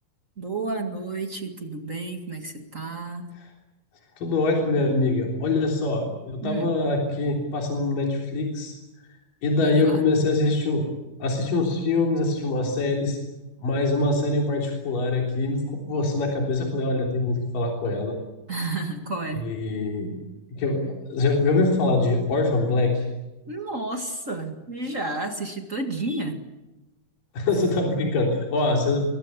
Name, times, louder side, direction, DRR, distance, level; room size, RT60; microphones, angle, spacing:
voice 1, 0.4-3.3 6.4-6.7 9.6-10.0 18.5-19.5 23.5-26.4, right 2 dB, 30° right, 4 dB, 1.4 m, -31 dB
voice 2, 4.2-8.7 9.4-10.9 11.2-13.2 13.6-18.2 19.4-20.2 20.5-20.8 21.1-23.0 27.3-29.0, left 2 dB, 60° left, 0 dB, 5.1 m, -24 dB
26.5 x 23.0 x 8.2 m, 1.0 s
omnidirectional pair, 4.4 m